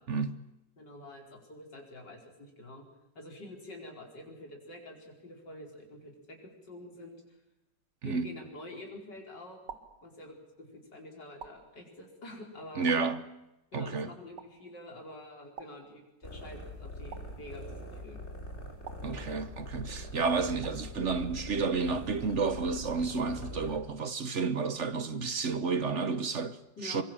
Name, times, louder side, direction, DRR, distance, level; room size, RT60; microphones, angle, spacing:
voice 1, 0.1-0.4 8.0-8.4 12.8-13.3 13.7-14.1 19.0-27.0, right 4 dB, 45° right, 1.1 m, -31 dB
voice 2, 0.8-2.8 3.2-7.2 8.0-9.6 10.0-12.9 13.7-18.2 26.8-27.0, left 1 dB, 60° left, 5.4 m, -47 dB
sound 1, 8.8-9.0 9.7-10.6 11.4-12.3 12.9-13.7 14.4-15.0 15.6-16.5 17.1-18.0 18.8-19.8 20.6-21.2, right 7 dB, 65° right, 2.0 m, -51 dB
sound 2, 16.2-23.8, left 1 dB, 35° left, 5.0 m, -43 dB
24.0 x 23.0 x 7.5 m
omnidirectional pair, 2.1 m